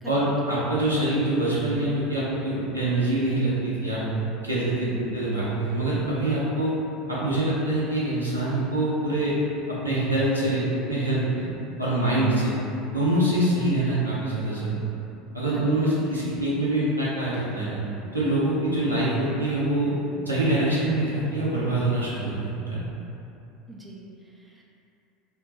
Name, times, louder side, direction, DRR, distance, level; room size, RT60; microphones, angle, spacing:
voice 1, 0.1-4.1 4.4-6.7 7.1-9.4 9.7-11.5 11.8-12.6 12.9-14.8 15.3-17.8 18.1-19.9 20.3-22.8, right 1 dB, 85° right, -8 dB, 0.5 m, -25 dB
voice 2, 23.7-24.6, right 1 dB, 15° right, -3 dB, 0.5 m, -41 dB
3.4 x 2.2 x 3.0 m, 2.7 s
figure-of-eight pair, 70°, 0 cm